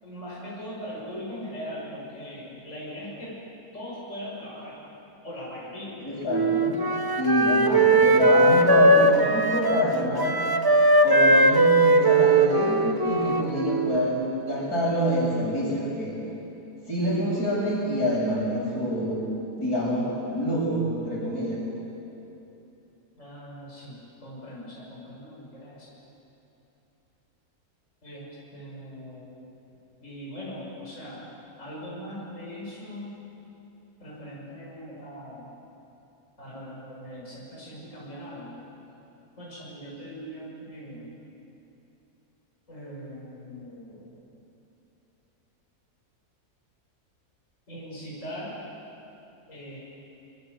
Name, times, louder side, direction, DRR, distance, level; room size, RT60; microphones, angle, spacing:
voice 1, 0.0-3.4 3.7-4.8 5.2-6.0 23.2-25.9 28.0-29.4 30.0-31.3 31.6-33.2 34.0-35.5 36.4-38.6 39.4-41.1 42.7-44.2 47.7-48.6 49.5-49.8, equal, 50° left, -6 dB, 6.5 m, -40 dB
voice 2, 6.0-6.8 7.1-10.4 11.0-16.2 16.9-21.6, equal, 75° left, -4 dB, 7.9 m, -27 dB
Wind instrument woodwind instrument, 6.3-14.0, right 2 dB, 15° right, 0.9 m, -20 dB
27.0 x 26.5 x 8.2 m, 2.9 s
omnidirectional pair, 1.6 m